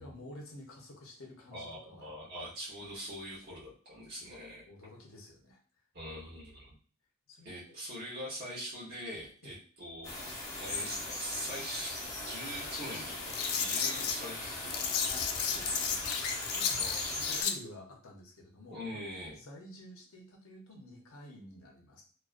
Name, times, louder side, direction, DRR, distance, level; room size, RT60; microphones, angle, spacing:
voice 1, 0.0-2.3 4.3-4.4 4.6-5.6 7.3-7.8 9.4-9.6 15.4-16.0 16.3-16.9 17.2-19.0 19.3-22.0, left 1 dB, 65° left, 0 dB, 0.7 m, -51 dB
voice 2, 1.5-4.6 5.9-6.7 7.4-10.1 10.6-12.0 12.2-15.1 16.8-17.1 18.7-19.4, equal, 50° right, -7 dB, 0.9 m, -43 dB
sound 1, 10.0-17.4, left 2 dB, 15° left, 0.6 m, -39 dB
sound 2, 12.5-17.5, left 7 dB, 90° left, 0.3 m, -34 dB
2.4 x 2.3 x 2.4 m, 0.43 s
head